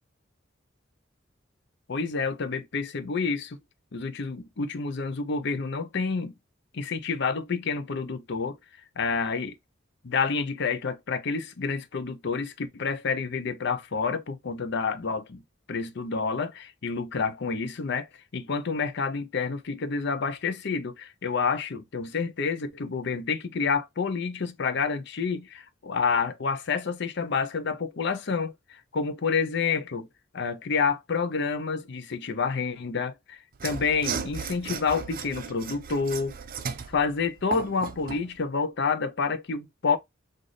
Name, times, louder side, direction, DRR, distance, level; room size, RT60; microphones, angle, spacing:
voice 1, 1.9-3.6 3.9-6.3 6.7-8.6 9.0-9.6 10.0-15.4 15.7-18.1 18.3-30.1 30.3-36.3 36.9-40.0, left 5 dB, 65° left, 0.6 m, -29 dB
Mechanisms / Sawing, 33.5-38.3, right 6 dB, 45° right, 0.5 m, -36 dB
4.0 x 2.6 x 3.2 m
head